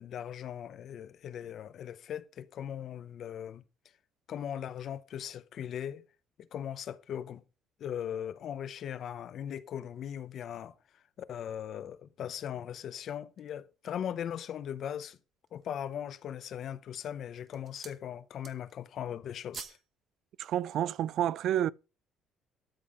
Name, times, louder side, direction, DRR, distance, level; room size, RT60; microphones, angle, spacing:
voice 1, 0.0-3.6 4.3-6.0 6.4-7.4 7.8-10.7 11.2-15.2 15.5-19.8, left 9 dB, 45° left, 0.7 m, -39 dB
sound 1, 13.2-14.2 14.8-14.9 15.3-15.9 16.6-16.9 17.3-18.0 18.3-18.8 19.1-19.9 20.2-20.4, right 6 dB, 35° right, 1.0 m, -49 dB
voice 2, 20.4-21.7, right 11 dB, 50° right, 0.4 m, -29 dB
12.5 x 5.5 x 5.0 m
cardioid pair, 170°, 0 cm